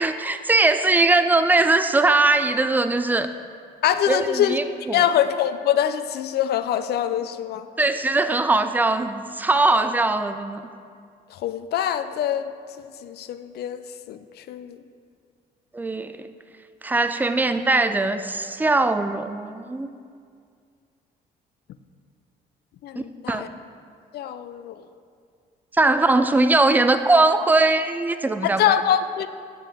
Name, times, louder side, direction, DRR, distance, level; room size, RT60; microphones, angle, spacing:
voice 1, 0.0-3.3 4.1-5.0 7.8-10.6 15.7-16.3 16.8-19.9 23.3-23.5 25.7-28.8, right 2 dB, 10° right, 10 dB, 0.3 m, -20 dB
voice 2, 3.8-4.6 4.9-7.7 11.3-12.5 12.8-14.8 22.8-23.5 24.1-24.8 28.4-29.3, left 10 dB, 65° left, 11 dB, 0.4 m, -24 dB
7.4 x 6.9 x 3.4 m, 2.2 s
cardioid pair, 90°, 18 cm